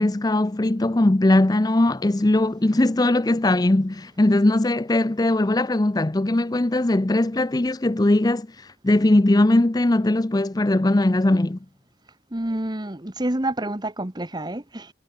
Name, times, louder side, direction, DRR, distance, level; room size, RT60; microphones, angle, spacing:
voice 1, 0.0-11.6, left 1 dB, 20° left, 0.5 m, -20 dB
voice 2, 12.3-14.9, right 1 dB, 25° right, 1.4 m, -28 dB
head